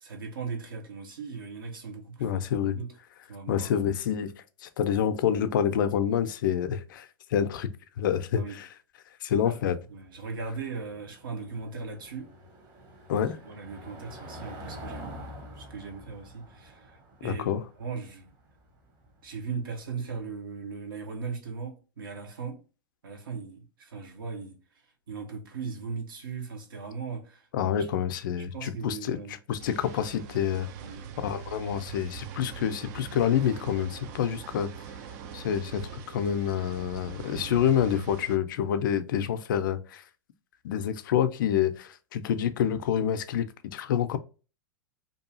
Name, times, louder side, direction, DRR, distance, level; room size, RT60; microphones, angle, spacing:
voice 1, 0.0-2.9 3.3-3.8 8.3-8.6 9.4-9.6 9.9-12.3 13.1-15.2 15.6-18.3 19.2-22.6 23.0-24.6 25.1-27.5 27.8-29.4 30.8-31.1, right 5 dB, 75° right, 0.9 m, -38 dB
voice 2, 2.2-2.8 3.5-4.3 4.6-7.7 8.0-8.7 9.2-9.8 13.1-13.4 17.2-17.6 27.5-29.2 29.5-30.7 31.2-34.7 35.3-40.0 40.6-44.2, left 9 dB, 65° left, 0.4 m, -27 dB
Car passing by / Engine, 9.8-20.2, equal, 35° right, 0.9 m, -47 dB
sound 1, 29.6-38.4, right 8 dB, 50° right, 0.4 m, -43 dB
2.6 x 2.4 x 2.7 m
hypercardioid pair, 100°, 12 cm